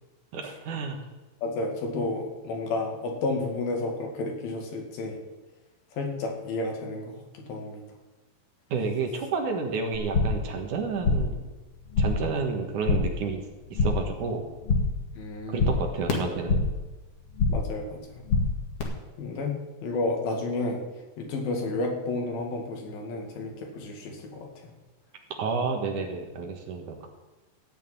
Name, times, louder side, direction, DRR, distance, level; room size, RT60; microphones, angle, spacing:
voice 1, 0.3-1.0 8.7-11.4 12.0-13.4 13.7-14.4 15.5-16.6 25.4-27.1, right 4 dB, 65° right, 3 dB, 2.9 m, -30 dB
voice 2, 1.4-5.2 6.0-7.1 7.5-7.8 15.2-15.7 17.5-18.0 19.2-20.8 21.2-24.5, left 2 dB, 85° left, 1 dB, 4.0 m, -31 dB
sound 1, 9.9-10.5 10.8-11.4 11.7-12.3 12.6-13.2 13.5-14.1 14.4-15.0 15.3-16.8 17.1-17.8 18.0-18.8, left 3 dB, 45° left, 2.7 m, -26 dB
15.0 x 6.4 x 9.3 m, 1.2 s
omnidirectional pair, 4.0 m